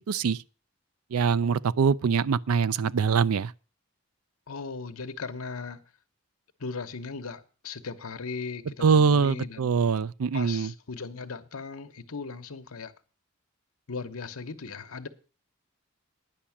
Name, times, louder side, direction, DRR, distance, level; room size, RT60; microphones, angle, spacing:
voice 1, 0.1-0.4 1.1-3.5 8.8-10.7, right 6 dB, 85° right, 0.4 m, -23 dB
voice 2, 4.5-5.8 6.6-9.7 10.3-12.9 13.9-15.1, left 4 dB, 80° left, 1.0 m, -38 dB
10.0 x 5.9 x 8.6 m
head